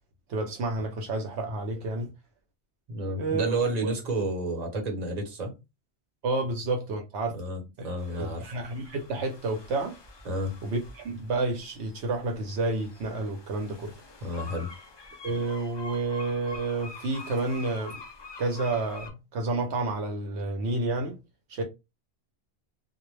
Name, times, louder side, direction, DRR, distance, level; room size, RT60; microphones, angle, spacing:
voice 1, 0.3-2.1 3.2-3.5 3.8-3.9 6.2-7.4 8.1-10.0 10.6-14.0 15.2-18.0 18.4-21.2 21.5-21.6, right 3 dB, 75° right, 0.9 m, -30 dB
voice 2, 2.9-5.5 7.3-8.5 10.2-10.5 14.2-14.7, right 1 dB, 40° right, 0.9 m, -31 dB
sound 1, 8.0-19.1, left 3 dB, 40° left, 0.4 m, -46 dB
2.3 x 2.1 x 3.1 m
omnidirectional pair, 1.1 m